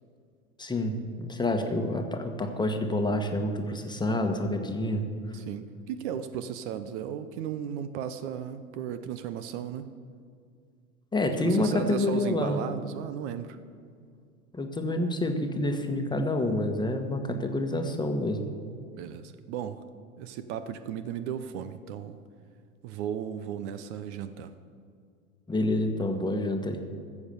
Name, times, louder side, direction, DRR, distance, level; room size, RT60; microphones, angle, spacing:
voice 1, 0.6-5.0 11.1-12.6 14.5-18.5 25.5-26.8, left 1 dB, 10° left, 4 dB, 1.3 m, -28 dB
voice 2, 5.3-9.9 11.3-13.6 18.9-19.8 20.2-22.2 22.8-24.5, right 9 dB, 50° right, 11 dB, 0.8 m, -35 dB
14.5 x 7.3 x 6.9 m, 2.2 s
hypercardioid pair, 90°, 43 cm